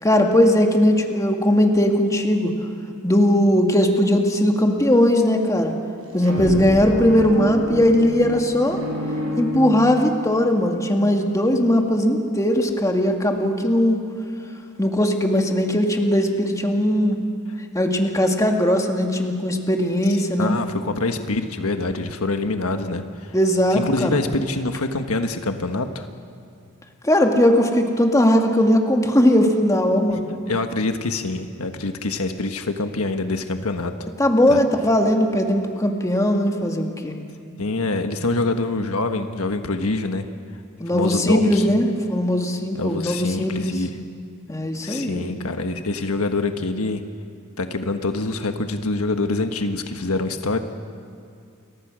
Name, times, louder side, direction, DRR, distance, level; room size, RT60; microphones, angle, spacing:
voice 1, 0.0-2.5 3.0-5.8 6.1-8.8 9.4-14.0 14.8-17.2 17.7-20.6 23.3-24.2 27.0-30.3 34.2-37.2 40.8-43.7 44.5-45.3, left 1 dB, 15° left, 3 dB, 2.1 m, -19 dB
sound 1, 6.0-10.2, left 1 dB, 90° right, 6.2 m, -29 dB
voice 2, 20.2-23.3 23.7-26.1 30.5-33.9 34.5-34.6 37.6-40.2 40.9-41.7 42.7-43.9 44.8-47.0 47.6-50.6, left 2 dB, 80° left, 6 dB, 1.4 m, -25 dB
29.5 x 23.5 x 6.3 m, 2.5 s
head